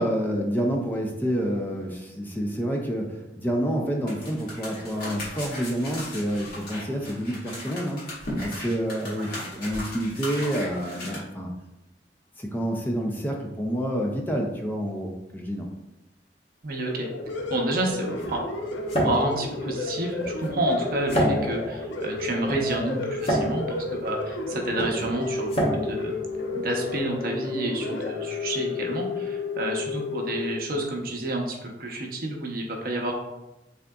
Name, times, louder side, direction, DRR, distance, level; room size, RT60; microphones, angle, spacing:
voice 1, 0.0-8.0 8.4-11.5 12.4-15.7, equal, 10° left, 1 dB, 0.4 m, -28 dB
sound 1, 4.1-11.1, left 1 dB, 55° left, 1.4 m, -37 dB
voice 2, 16.6-17.1 17.5-18.4 19.0-26.1 26.5-33.1, right 1 dB, 55° right, 1 dB, 0.6 m, -29 dB
sound 2, 16.8-30.5, left 2 dB, 85° left, 0.5 m, -32 dB
sound 3, 17.2-27.1, equal, 35° left, 0.8 m, -30 dB
3.8 x 3.5 x 2.3 m, 0.97 s
head